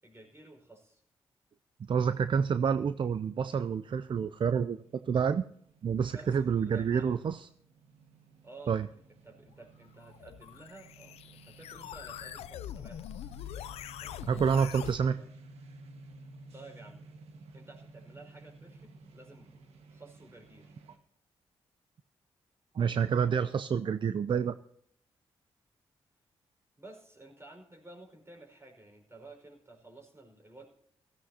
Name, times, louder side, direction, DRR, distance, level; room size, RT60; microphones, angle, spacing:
voice 1, 0.0-1.0 6.1-7.2 8.4-8.8 9.1-13.0 14.0-15.3 16.5-17.0 17.5-19.5 19.9-20.7 26.8-30.7, right 2 dB, 25° right, 1 dB, 5.0 m, -53 dB
voice 2, 1.8-5.5 5.8-7.5 8.7-8.9 14.3-15.2 22.7-24.6, right 6 dB, 50° right, 13 dB, 0.5 m, -28 dB
sound 1, 2.9-21.0, right 2 dB, 85° right, 1.6 m, -55 dB
sound 2, 10.0-15.0, left 11 dB, 90° left, 0.5 m, -43 dB
16.5 x 15.0 x 2.8 m, 0.69 s
cardioid pair, 55°, 10 cm